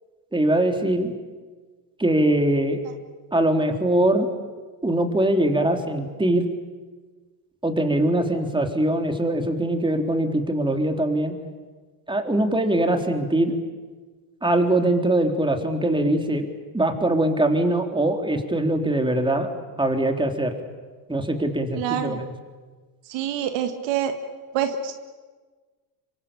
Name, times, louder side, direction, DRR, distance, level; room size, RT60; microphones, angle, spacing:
voice 1, 0.3-1.1 2.0-2.8 3.3-4.3 4.8-6.4 7.6-11.3 12.1-13.6 14.4-16.5 16.7-19.5 19.8-20.5 21.1-22.3, right 1 dB, 10° right, 4 dB, 3.8 m, -22 dB
voice 2, 21.8-22.2 23.1-24.1 24.5-24.9, right 9 dB, 65° right, 7 dB, 2.0 m, -26 dB
26.0 x 24.0 x 8.8 m, 1.4 s
hypercardioid pair, 75°, 48 cm